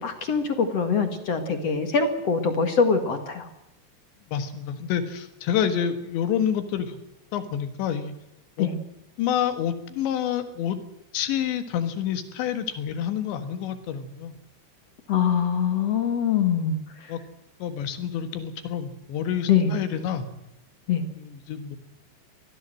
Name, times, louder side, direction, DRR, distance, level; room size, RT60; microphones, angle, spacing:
voice 1, 0.0-3.5 8.6-8.8 15.1-17.1 19.5-19.7 20.9-21.0, left 6 dB, 50° left, 7 dB, 2.1 m, -23 dB
voice 2, 4.3-7.0 7.3-8.2 8.6-8.7 9.2-10.8 11.1-14.4 17.1-17.2 17.6-20.3 21.2-21.8, left 9 dB, 75° left, 10 dB, 3.8 m, -28 dB
24.5 x 18.0 x 7.7 m, 0.88 s
omnidirectional pair, 5.3 m